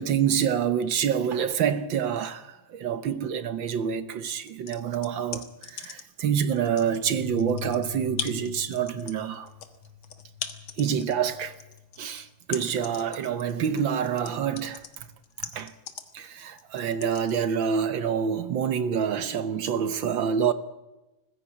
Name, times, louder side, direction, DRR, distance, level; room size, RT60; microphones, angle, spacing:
voice 1, 0.0-9.5 10.8-11.5 12.0-14.8 15.4-15.7 16.1-20.5, right 8 dB, 65° right, 1.7 m, -27 dB
sound 1, 4.3-6.2 6.6-17.3, left 8 dB, 75° left, 2.2 m, -39 dB
sound 2, 6.7-14.9, left 10 dB, 35° right, 4.5 m, -44 dB
20.5 x 15.5 x 9.0 m
omnidirectional pair, 2.3 m